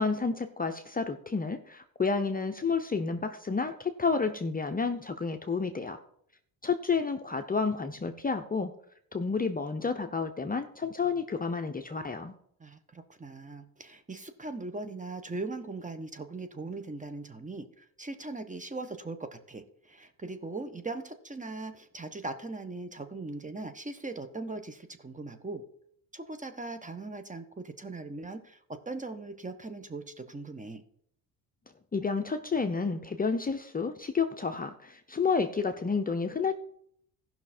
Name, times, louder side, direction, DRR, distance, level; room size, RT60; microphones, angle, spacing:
voice 1, 0.0-6.0 6.6-8.7 9.1-12.3 31.9-36.5, left 4 dB, 20° left, 6 dB, 0.8 m, -30 dB
voice 2, 12.6-25.6 26.1-30.8, right 3 dB, 15° right, 9 dB, 1.3 m, -40 dB
15.5 x 5.9 x 4.4 m, 0.67 s
supercardioid pair, 80°, 43 cm